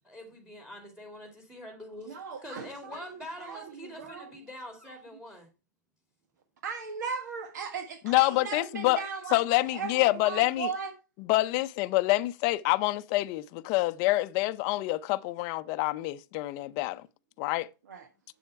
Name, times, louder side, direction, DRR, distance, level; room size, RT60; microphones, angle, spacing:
voice 1, 0.0-5.5, left 1 dB, 5° right, 2.4 m, -45 dB
voice 2, 2.1-4.3 6.6-10.9 17.9-18.1, right 6 dB, 70° right, 1.5 m, -38 dB
voice 3, 8.0-9.0 9.3-10.7 11.3-17.0 17.4-17.7, left 19 dB, 40° left, 0.6 m, -27 dB
7.9 x 7.5 x 4.4 m
hypercardioid pair, 135°, 10 cm